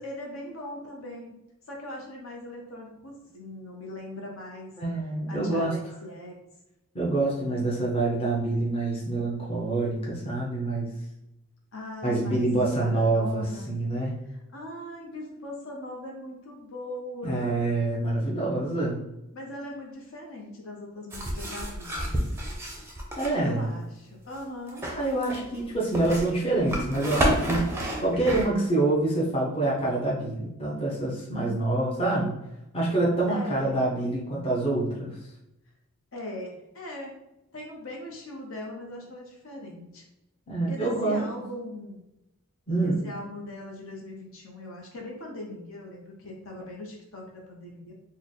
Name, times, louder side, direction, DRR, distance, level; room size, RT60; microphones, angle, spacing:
voice 1, 0.0-1.4 1.7-4.7 5.3-6.3 11.7-12.5 12.8-13.7 14.3-17.7 19.3-22.2 23.4-24.8 27.7-28.1 33.3-33.8 36.1-37.1 37.5-40.0 40.7-42.0 42.8-47.9, left 1 dB, 65° left, 0 dB, 0.8 m, -40 dB
voice 2, 4.8-5.7 6.9-10.9 12.0-14.1 17.2-19.0 23.2-23.6 24.9-27.7 28.0-32.4 32.7-35.2 40.5-41.2 42.7-43.0, right 2 dB, 25° left, -5 dB, 0.7 m, -26 dB
sound 1, 21.1-23.3 24.7-28.4, equal, 10° right, 0.5 m, -29 dB
3.2 x 2.1 x 4.0 m, 0.90 s
head